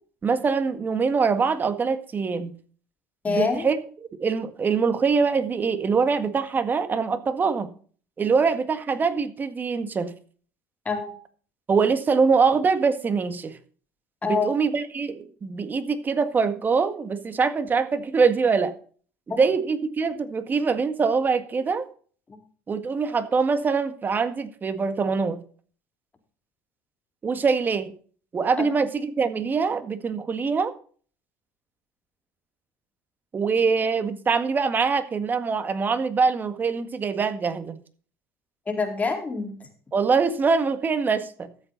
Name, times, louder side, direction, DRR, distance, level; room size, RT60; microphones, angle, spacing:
voice 1, 0.2-2.5 3.3-3.8 4.2-7.7 8.2-10.1 11.7-13.6 14.2-18.7 19.3-21.9 22.7-25.4 27.2-27.9 28.3-30.7 33.3-37.8 39.9-41.5, right 5 dB, 30° right, 10 dB, 1.7 m, -23 dB
voice 2, 3.2-3.7 10.8-11.1 14.2-14.5 19.3-19.4 28.6-28.7 38.7-39.7, left 4 dB, 25° left, 3 dB, 3.9 m, -26 dB
14.0 x 8.1 x 4.0 m, 0.43 s
supercardioid pair, 95°, 7 cm